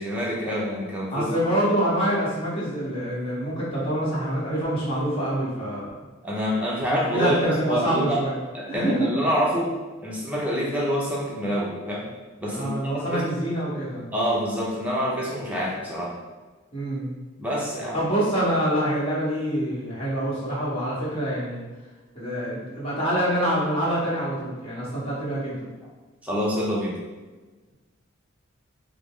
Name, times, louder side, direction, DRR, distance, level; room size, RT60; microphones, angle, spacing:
voice 1, 0.0-1.3 6.2-8.2 8.5-9.7 10.0-12.1 12.4-13.2 14.1-16.1 17.4-18.1 26.2-27.0, equal, 5° right, -5 dB, 0.7 m, -26 dB
voice 2, 1.1-5.9 6.9-8.3 8.7-9.1 12.5-14.1 16.7-17.1 17.9-21.7 22.1-25.7, right 1 dB, 30° left, -8 dB, 1.1 m, -26 dB
3.7 x 2.0 x 3.6 m, 1.3 s
head